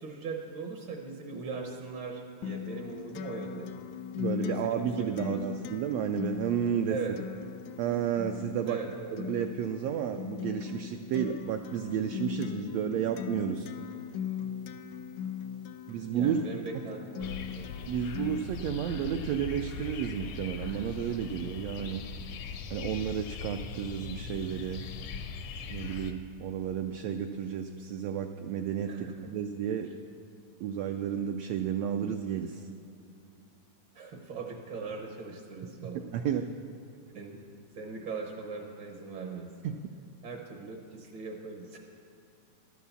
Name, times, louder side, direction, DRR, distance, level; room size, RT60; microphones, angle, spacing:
voice 1, 0.0-3.7 4.4-5.4 6.9-7.1 8.7-9.2 16.1-17.7 28.9-29.1 33.9-36.0 37.1-37.4 37.7-39.5 40.2-41.8, right 4 dB, 65° right, 2 dB, 1.2 m, -40 dB
Acoustic guitar, 2.4-18.4, left 9 dB, 90° left, 2.1 m, -39 dB
voice 2, 4.2-7.2 7.8-8.8 9.1-13.7 15.9-16.4 17.9-22.0 22.7-24.8 25.7-29.9 30.6-32.6 35.8-36.5 39.6-39.8, right 9 dB, 85° right, 5 dB, 1.5 m, -32 dB
sound 1, 17.2-26.1, left 5 dB, 70° left, 1.4 m, -40 dB
12.0 x 8.4 x 7.0 m, 2.6 s
omnidirectional pair, 3.4 m